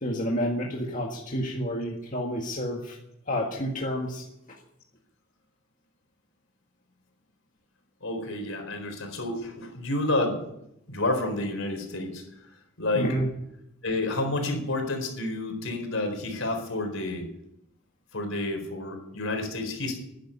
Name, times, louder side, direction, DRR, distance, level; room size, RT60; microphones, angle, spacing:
voice 1, 0.0-3.0 3.3-4.2 12.9-13.3, equal, 40° left, -1 dB, 1.8 m, -29 dB
voice 2, 8.0-10.4 10.9-12.5 12.8-13.1 13.8-17.3 18.1-20.0, left 2 dB, 70° left, 4 dB, 4.2 m, -30 dB
13.0 x 10.5 x 9.9 m, 0.82 s
head